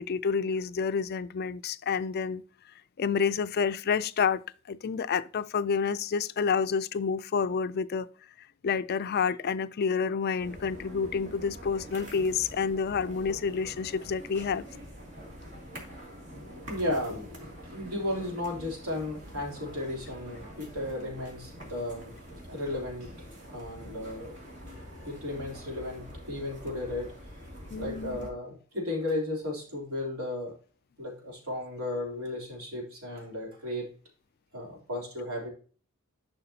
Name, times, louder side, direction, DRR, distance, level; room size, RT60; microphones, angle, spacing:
voice 1, 0.0-2.4 3.0-4.4 4.7-8.1 8.6-14.6 27.7-28.2, left 6 dB, 45° left, 0.4 m, -29 dB
sound 1, 10.4-28.3, equal, 60° right, 2.6 m, -46 dB
voice 2, 16.6-24.4 24.7-27.1 27.8-30.5 31.0-33.9 34.5-35.5, left 1 dB, 80° right, 3.2 m, -35 dB
11.0 x 5.8 x 2.8 m
head